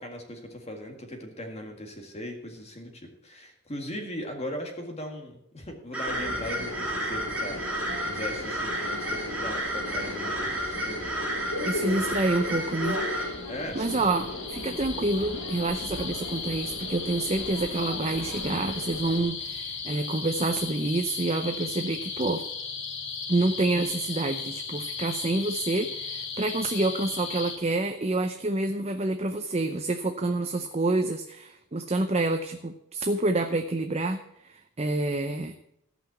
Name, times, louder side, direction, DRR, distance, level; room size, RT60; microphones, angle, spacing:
voice 1, 0.0-11.6 11.9-12.3 13.5-14.0, left 1 dB, 30° left, 3 dB, 1.9 m, -39 dB
sound 1, 5.9-13.3, right 1 dB, 5° right, 2.3 m, -32 dB
Subway metro underground, 6.1-19.2, left 2 dB, 90° left, 3.7 m, -37 dB
sound 2, 7.6-27.6, left 5 dB, 55° left, 2.0 m, -37 dB
voice 2, 11.7-13.0 13.7-22.4 23.3-35.5, right 2 dB, 30° right, 6 dB, 0.6 m, -28 dB
14.5 x 5.8 x 8.0 m, 0.79 s
head